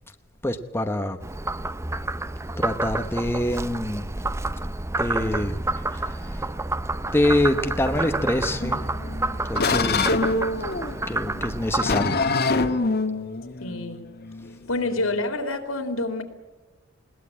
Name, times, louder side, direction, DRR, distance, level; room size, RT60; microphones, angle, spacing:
voice 1, 0.4-1.2 2.6-4.1 5.0-6.4 7.1-8.9 9.4-10.2 11.1-12.2, left 1 dB, 10° left, 1.0 m, -26 dB
Frog, 1.2-11.8, right 2 dB, 15° right, 0.6 m, -29 dB
sound 1, 8.6-15.2, left 3 dB, 50° left, 1.5 m, -26 dB
voice 2, 13.6-14.0 14.7-16.2, left 2 dB, 80° left, 3.4 m, -27 dB
21.0 x 18.5 x 8.7 m
head